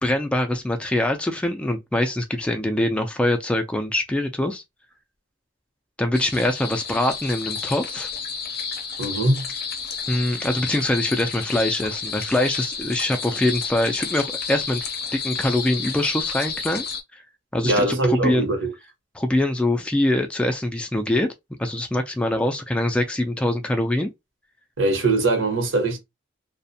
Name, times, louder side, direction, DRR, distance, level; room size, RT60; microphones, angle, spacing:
voice 1, 0.0-4.6 6.0-8.1 10.1-14.9 15.1-16.8 17.1-17.2 17.5-18.5 19.1-21.3 21.6-24.1, left 1 dB, 5° left, 0.3 m, -23 dB
sound 1, 6.1-17.0, left 6 dB, 55° left, 0.5 m, -31 dB
voice 2, 9.0-9.5 17.6-18.7 24.8-26.0, right 2 dB, 85° right, 0.9 m, -21 dB
2.5 x 2.1 x 2.6 m
head